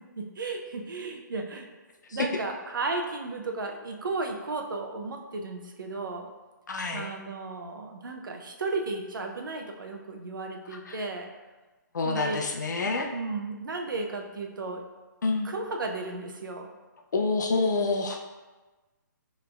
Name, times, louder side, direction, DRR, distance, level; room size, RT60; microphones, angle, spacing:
voice 1, 0.0-1.7 2.1-6.3 6.9-11.3 12.0-12.6 12.8-14.8 15.4-16.7, right 3 dB, 90° right, 3 dB, 0.6 m, -34 dB
voice 2, 6.7-7.1 10.9-11.0 11.9-13.1 15.2-15.5 17.1-18.4, left 3 dB, 65° left, 3 dB, 0.6 m, -27 dB
4.8 x 3.2 x 2.4 m, 1.2 s
hypercardioid pair, 180°, 11 cm